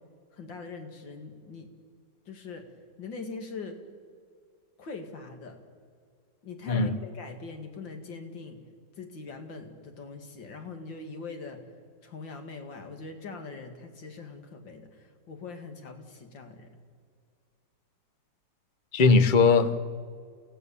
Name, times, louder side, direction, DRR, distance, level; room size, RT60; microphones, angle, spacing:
voice 1, 0.3-1.7 2.3-2.7 3.0-3.8 4.8-5.6 6.4-8.6 9.0-11.6 12.0-16.7, left 4 dB, 80° left, 5 dB, 2.7 m, -42 dB
voice 2, 6.7-7.0 18.9-19.7, left 4 dB, 40° left, 11 dB, 0.8 m, -20 dB
30.0 x 16.0 x 7.0 m, 2.1 s
omnidirectional pair, 2.0 m